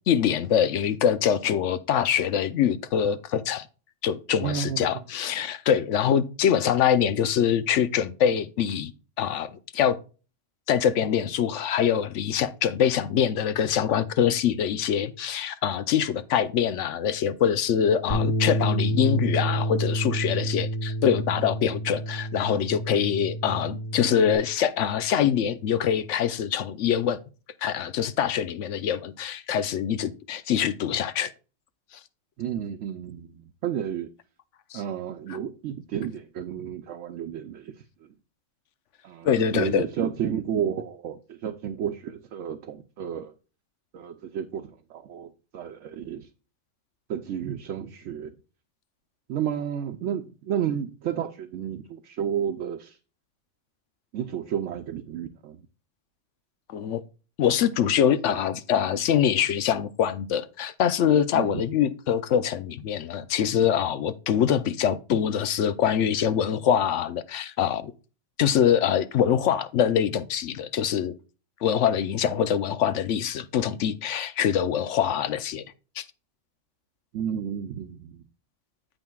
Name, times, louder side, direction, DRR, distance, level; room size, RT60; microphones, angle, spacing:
voice 1, 0.1-3.7 4.0-8.9 9.2-10.0 10.7-27.2 27.6-31.3 34.7-34.8 35.3-35.4 39.2-39.9 56.7-57.0 57.4-67.9 68.4-71.1 71.6-75.6 76.0-76.1, left 9 dB, 85° left, 1.0 m, -24 dB
voice 2, 4.4-4.9 32.4-34.1 34.7-37.7 39.0-43.3 43.9-46.3 47.1-48.3 49.3-53.0 54.1-55.6 61.3-61.6 77.1-78.2, right 9 dB, 85° right, 1.0 m, -31 dB
Bass guitar, 18.1-24.3, right 1 dB, 30° left, 1.1 m, -28 dB
8.9 x 8.0 x 2.3 m
omnidirectional pair, 1.2 m